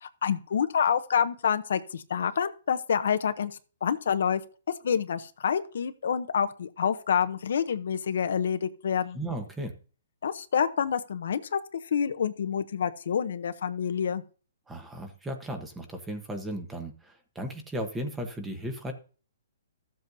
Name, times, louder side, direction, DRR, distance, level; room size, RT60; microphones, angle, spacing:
voice 1, 0.0-4.4 4.8-9.2 10.2-11.6 11.9-14.2, left 7 dB, 70° left, 10 dB, 0.8 m, -27 dB
voice 2, 9.1-9.8 14.7-18.9, right 1 dB, 10° right, 6 dB, 1.2 m, -35 dB
14.0 x 7.6 x 2.7 m, 0.38 s
hypercardioid pair, 155°, 0 cm